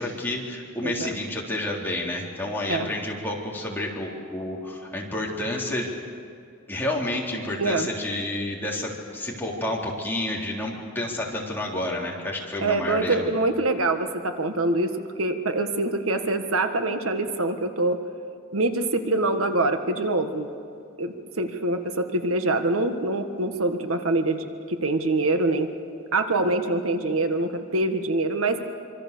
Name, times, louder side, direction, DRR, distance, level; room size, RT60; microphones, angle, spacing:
voice 1, 0.0-5.9 6.7-13.3, left 1 dB, 10° left, -3 dB, 3.6 m, -30 dB
voice 2, 0.8-1.2 2.7-2.9 7.6-7.9 12.6-14.9 15.2-18.0 18.5-20.5 21.0-25.7 26.1-28.6, right 2 dB, 80° right, 6 dB, 1.6 m, -25 dB
26.0 x 25.0 x 6.8 m, 2.4 s
head